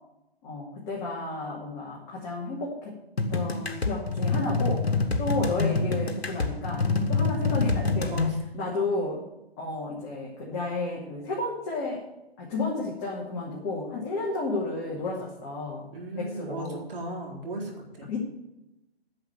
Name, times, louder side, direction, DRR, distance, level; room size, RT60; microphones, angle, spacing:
voice 1, 0.4-2.9 3.3-8.2 8.5-9.2 9.6-12.1 12.4-15.9 16.2-16.8 18.1-18.2, left 3 dB, 25° left, -5 dB, 2.5 m, -32 dB
sound 1, 3.2-8.3, left 3 dB, 85° left, 1.5 m, -26 dB
voice 2, 8.1-8.4 15.9-18.1, right 2 dB, 60° right, -1 dB, 4.3 m, -36 dB
10.5 x 6.7 x 9.1 m, 0.92 s
figure-of-eight pair, 140°, 31 cm